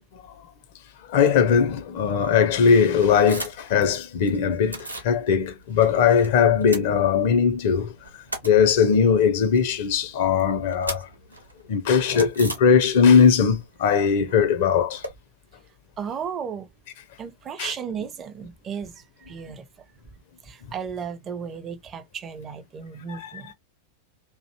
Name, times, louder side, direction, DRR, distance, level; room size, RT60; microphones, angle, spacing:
voice 1, 1.1-8.0 8.4-11.1 11.7-15.0 17.6-17.7 23.1-23.5, left 6 dB, 50° left, 0.4 m, -20 dB
sound 1, 3.0-3.8 4.0-5.1 5.5-6.3 6.5-7.5 7.9-13.2 13.5-15.1, right 1 dB, 85° right, 0.7 m, -37 dB
voice 2, 16.0-16.7 17.2-19.7 20.4-23.5, right 7 dB, 25° right, 0.5 m, -34 dB
2.5 x 2.1 x 2.7 m
figure-of-eight pair, 90°, 0 cm